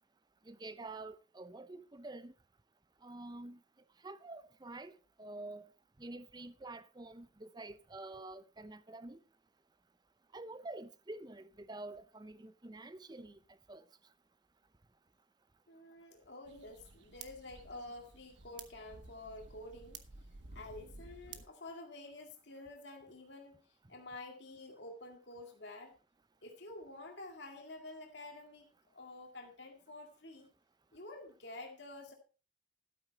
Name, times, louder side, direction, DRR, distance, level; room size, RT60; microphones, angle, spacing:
voice 1, 0.5-2.3 3.0-3.6 4.0-5.7 6.0-9.2 10.3-13.4 13.7-13.9, right 2 dB, 20° right, 0.6 m, -48 dB
voice 2, 15.7-20.0 20.5-23.6 23.9-26.0 26.4-30.5 30.9-32.1, left 2 dB, 65° left, 2.2 m, -49 dB
sound 1, 16.4-21.5, right 4 dB, 65° right, 1.2 m, -53 dB
12.5 x 8.6 x 4.2 m
head